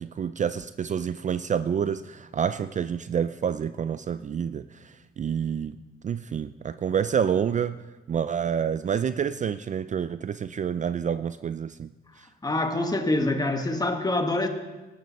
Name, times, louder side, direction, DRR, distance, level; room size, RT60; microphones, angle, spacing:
voice 1, 0.0-5.8 6.0-7.8 8.1-11.9, right 8 dB, 40° right, 13 dB, 0.4 m, -28 dB
voice 2, 12.4-14.5, left 2 dB, 20° left, 5 dB, 1.7 m, -25 dB
18.5 x 12.0 x 4.2 m, 1.1 s
cardioid pair, 90°, 20 cm